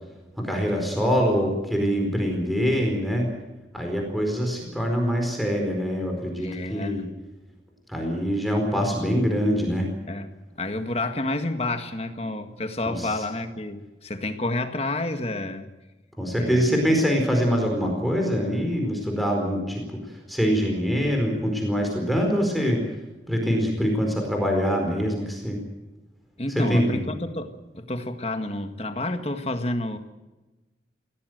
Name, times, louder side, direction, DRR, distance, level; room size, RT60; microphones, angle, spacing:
voice 1, 0.4-3.3 3.7-7.0 7.9-9.9 12.8-13.2 16.2-22.8 23.3-25.6 26.5-27.0, equal, ahead, 1 dB, 4.5 m, -24 dB
voice 2, 6.4-7.0 10.1-15.7 16.4-16.7 26.4-30.0, left 2 dB, 35° left, 7 dB, 1.7 m, -30 dB
24.0 x 17.0 x 7.9 m, 1.1 s
head